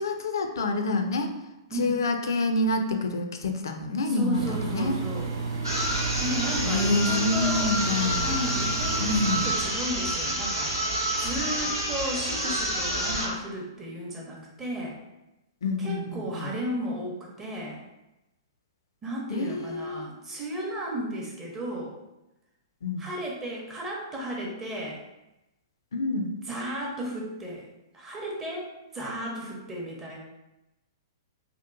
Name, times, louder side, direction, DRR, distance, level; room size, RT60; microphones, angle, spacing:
voice 1, 0.0-1.3 1.7-5.0 6.6-8.3 9.0-9.5 15.6-16.5 19.3-20.1 22.8-23.1 25.9-26.3, left 3 dB, 70° left, 5 dB, 0.3 m, -27 dB
voice 2, 4.0-5.3 6.2-7.7 8.2-15.0 15.8-17.8 19.0-21.9 23.0-25.0 26.5-27.6 27.9-30.2, right 1 dB, 15° right, -3 dB, 0.7 m, -34 dB
Engine, 4.3-9.5, right 4 dB, 65° right, 0.5 m, -32 dB
sound 1, 5.6-13.4, right 1 dB, 90° right, 1.2 m, -28 dB
2.8 x 2.1 x 2.4 m, 0.96 s
figure-of-eight pair, 110°, 2 cm